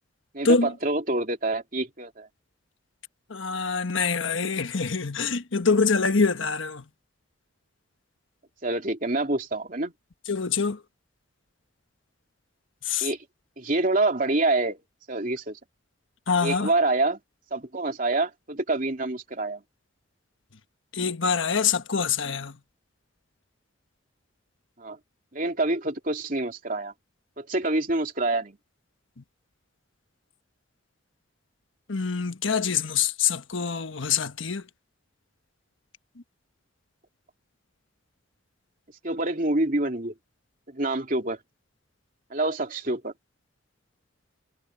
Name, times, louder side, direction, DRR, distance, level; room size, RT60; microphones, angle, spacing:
voice 1, 0.3-2.3 8.6-9.9 13.0-13.2 13.6-14.8 15.1-15.6 16.4-17.2 17.5-19.6 24.8-25.0 25.3-26.9 27.4-28.6 39.0-40.1 40.7-41.4 42.3-43.1, right 2 dB, 45° right, 3.0 m, -26 dB
voice 2, 3.3-6.8 10.3-10.8 12.8-13.1 16.3-16.7 20.9-22.6 31.9-34.6, left 5 dB, 75° left, 1.3 m, -25 dB
head